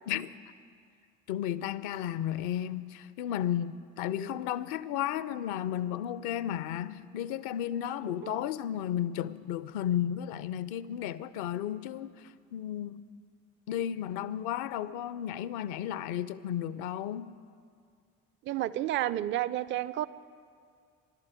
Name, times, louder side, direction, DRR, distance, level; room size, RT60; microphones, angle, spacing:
voice 1, 1.3-13.0 13.7-17.3, left 11 dB, 55° left, 0.6 m, -33 dB
voice 2, 18.5-20.1, right 13 dB, 30° right, 0.4 m, -31 dB
13.0 x 11.5 x 8.3 m
figure-of-eight pair, 50°, 40 cm